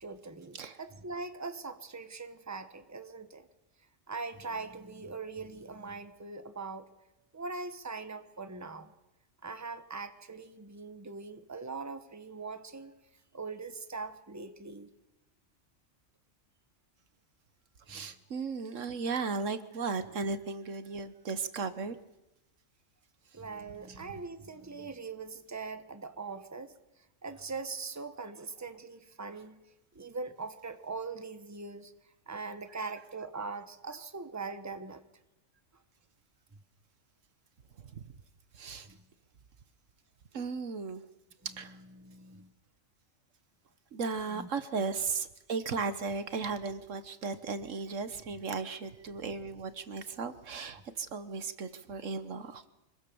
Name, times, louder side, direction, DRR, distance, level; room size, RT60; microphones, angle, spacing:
voice 1, 0.0-3.5 4.1-6.9 7.3-8.9 9.4-12.9 13.3-14.9 17.9-18.1 23.3-26.7 27.2-29.6 29.9-31.9 32.3-35.0 38.8-39.0 42.0-42.5 44.3-44.5, right 4 dB, 15° right, 10 dB, 1.2 m, -41 dB
voice 2, 17.9-22.0 23.9-24.0 37.9-38.0 38.5-38.9 40.3-41.0 41.6-41.8 43.9-52.7, right 4 dB, 75° right, 12 dB, 1.5 m, -36 dB
25.5 x 22.0 x 7.1 m, 0.95 s
omnidirectional pair, 1.3 m